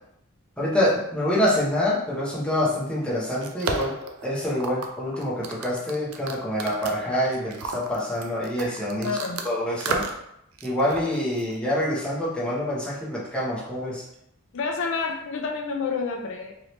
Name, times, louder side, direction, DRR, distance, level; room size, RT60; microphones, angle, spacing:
voice 1, 0.6-4.0 4.2-9.2 9.4-10.0 10.6-14.0, left 1 dB, 5° left, -7 dB, 0.8 m, -26 dB
sound 1, 3.0-9.5 9.8-10.3 10.6-11.6, right 4 dB, 70° right, 0.4 m, -33 dB
voice 2, 9.0-9.4 14.5-16.5, left 4 dB, 60° left, 2 dB, 0.4 m, -29 dB
2.9 x 2.7 x 3.1 m, 0.77 s
head